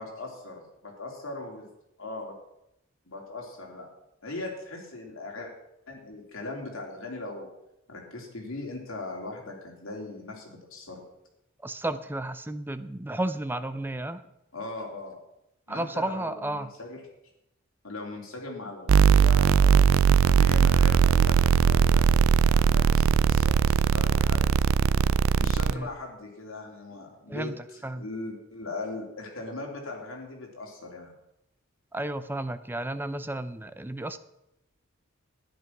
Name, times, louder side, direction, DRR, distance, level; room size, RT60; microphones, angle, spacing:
voice 1, 0.0-1.7 2.0-2.3 3.0-3.9 4.2-5.5 5.9-7.5 7.9-11.0 14.5-15.2 15.7-17.0 17.8-19.9 20.3-24.5 25.4-27.5 27.9-31.1, left 2 dB, 70° left, 0 dB, 3.4 m, -39 dB
voice 2, 11.6-14.2 15.7-16.7 25.7-25.9 27.3-28.0 31.9-34.2, right 1 dB, 10° right, 11 dB, 0.6 m, -32 dB
sound 1, 18.9-25.7, right 6 dB, 80° right, 0.4 m, -20 dB
12.5 x 10.5 x 5.9 m, 0.85 s
head